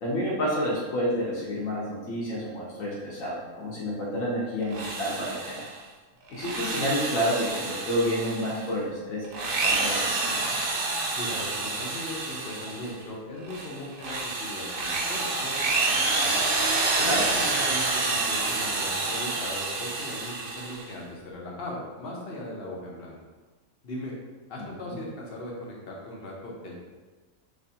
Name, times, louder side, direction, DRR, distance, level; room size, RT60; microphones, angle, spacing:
voice 1, 0.0-5.7 6.3-10.6 17.0-17.2 24.6-24.7, equal, 70° left, -5 dB, 1.2 m, -29 dB
Drill, 4.6-5.8 6.3-8.7 9.2-13.0 13.4-20.9, right 3 dB, 75° right, 0.5 m, -28 dB
voice 2, 11.1-16.5 17.0-23.2 23.8-24.1 24.5-26.7, left 1 dB, 50° left, -2 dB, 0.8 m, -38 dB
3.4 x 3.2 x 2.7 m, 1.3 s
omnidirectional pair, 1.5 m